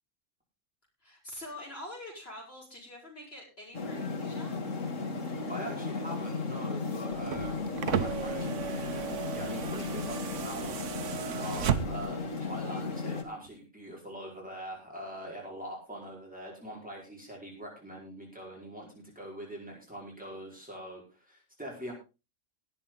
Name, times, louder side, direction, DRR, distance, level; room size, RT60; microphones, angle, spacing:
voice 1, 1.0-4.6, left 1 dB, 50° left, -2 dB, 7.4 m, -45 dB
sound 1, 3.7-13.2, left 3 dB, 85° left, 2.1 m, -35 dB
voice 2, 5.5-10.8 11.4-21.9, equal, 5° right, -2 dB, 5.2 m, -43 dB
sound 2, 7.1-12.2 13.5-13.6, right 8 dB, 70° right, 1.2 m, -34 dB
19.0 x 8.7 x 4.0 m, 0.29 s
omnidirectional pair, 1.3 m